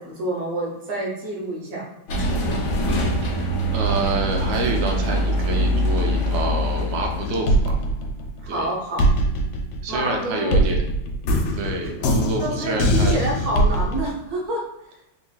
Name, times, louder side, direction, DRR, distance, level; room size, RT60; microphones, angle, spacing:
voice 1, 0.0-1.8 8.4-9.0 9.9-10.7 12.3-14.6, right 1 dB, 55° right, -2 dB, 1.3 m, -28 dB
sound 1, 2.1-7.6, equal, 65° left, 0.9 m, -23 dB
voice 2, 3.2-7.7 8.5-8.7 9.8-10.8 11.5-13.2, right 3 dB, 80° right, 2 dB, 1.3 m, -28 dB
sound 2, 7.2-8.6 9.0-14.1, right 1 dB, 90° left, 1.4 m, -21 dB
3.9 x 3.5 x 2.2 m, 0.88 s
omnidirectional pair, 2.1 m